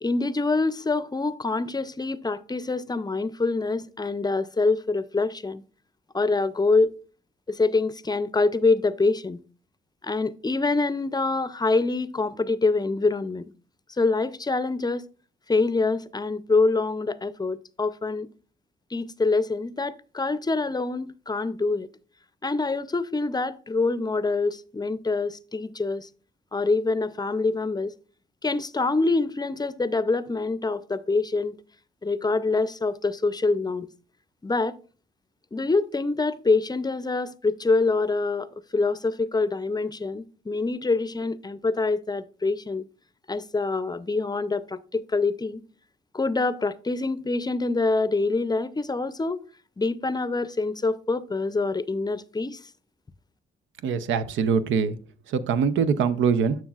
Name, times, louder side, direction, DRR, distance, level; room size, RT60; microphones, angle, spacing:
voice 1, 0.0-5.6 6.1-6.9 7.5-9.4 10.0-13.5 14.0-15.0 15.5-18.3 18.9-21.9 22.4-26.1 26.5-27.9 28.4-31.5 32.0-33.9 34.4-34.8 35.5-42.9 43.3-45.6 46.1-49.4 49.8-52.6, left 3 dB, 20° left, 0.5 m, -25 dB
voice 2, 53.8-54.9 55.3-56.6, right 6 dB, 90° right, 0.6 m, -23 dB
11.5 x 6.1 x 2.4 m
cardioid pair, 75°, 19 cm